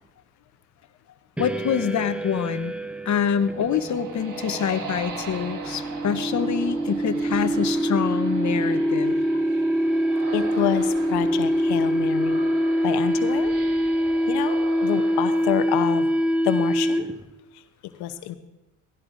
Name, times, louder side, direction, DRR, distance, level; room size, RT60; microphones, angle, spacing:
voice 1, 1.4-2.7 3.1-9.2, left 8 dB, 45° left, 12 dB, 0.9 m, -26 dB
sound 1, 1.4-17.3, equal, 5° right, 0.8 m, -25 dB
sound 2, 3.1-16.7, right 4 dB, 50° right, 1.7 m, -40 dB
voice 2, 9.0-9.4 10.3-12.4 12.8-13.5 14.3-16.1 16.4-17.0 18.0-18.4, left 12 dB, 70° left, 11 dB, 0.9 m, -28 dB
16.5 x 15.0 x 2.6 m, 0.98 s
hypercardioid pair, 55°, 40 cm